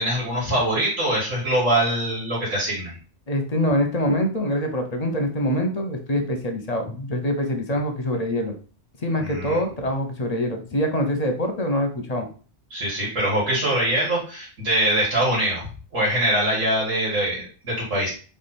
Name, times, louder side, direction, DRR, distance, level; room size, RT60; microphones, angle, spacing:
voice 1, 0.0-3.0 9.2-9.6 12.7-15.7 15.9-18.1, right 1 dB, 80° right, -6 dB, 2.2 m, -23 dB
voice 2, 3.3-8.5 9.0-12.3, equal, 35° left, 4 dB, 0.7 m, -24 dB
3.4 x 3.4 x 4.2 m, 0.38 s
omnidirectional pair, 1.3 m